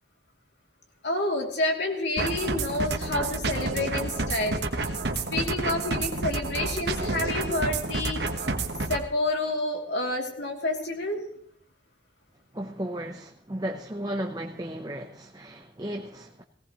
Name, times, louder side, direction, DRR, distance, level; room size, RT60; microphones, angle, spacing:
voice 1, 1.0-4.9 5.3-8.2 8.9-11.2, left 2 dB, 70° left, 1 dB, 2.8 m, -29 dB
sound 1, 2.2-9.0, right 3 dB, 65° right, 1.3 m, -29 dB
voice 2, 12.5-16.4, right 1 dB, 20° right, 2 dB, 0.8 m, -35 dB
18.0 x 18.0 x 3.1 m, 0.66 s
head